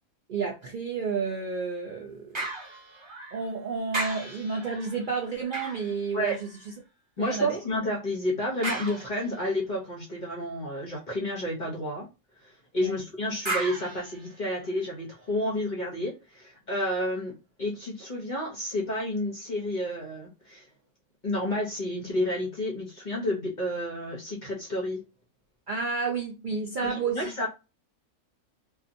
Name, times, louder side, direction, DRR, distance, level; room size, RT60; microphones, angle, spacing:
voice 1, 0.3-2.4 3.3-6.3 7.2-7.6 12.8-12.9 25.7-27.3, right 5 dB, 75° right, 0.4 m, -31 dB
sound 1, 2.3-3.6 3.9-6.7 8.6-9.6 13.4-14.9 15.5-15.6, right 2 dB, 25° right, 0.8 m, -36 dB
voice 2, 7.2-12.1 12.4-17.3 17.6-20.7 21.2-25.0 26.8-27.5, left 1 dB, 45° left, 0.6 m, -30 dB
2.7 x 2.3 x 2.5 m
omnidirectional pair, 1.5 m